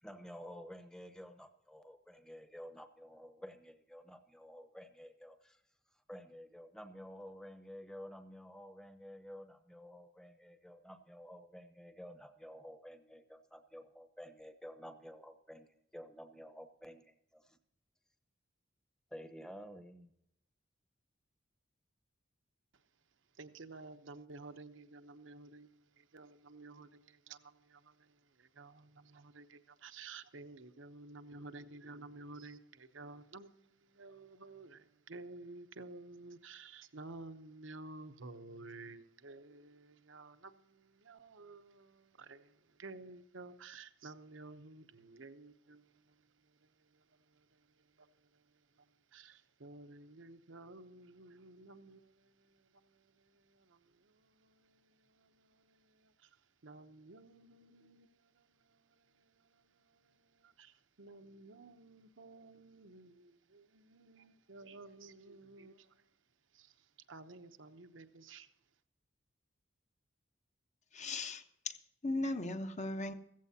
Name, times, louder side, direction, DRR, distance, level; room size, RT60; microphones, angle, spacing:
voice 1, 0.0-5.6 6.1-17.6 19.1-20.1, equal, 5° left, 1.0 m, -51 dB
voice 2, 23.4-25.7 26.0-27.9 28.4-33.6 33.9-42.5 42.8-45.8 49.1-52.3 53.5-53.8 54.4-54.8 55.2-56.1 56.6-58.4 59.2-59.3 60.0-60.1 60.4-60.7 61.0-65.9 66.5-66.7 67.1-68.5, right 3 dB, 75° right, 0.9 m, -52 dB
voice 3, 70.9-71.8 72.0-73.1, left 2 dB, 40° left, 1.0 m, -37 dB
15.5 x 15.0 x 2.8 m
head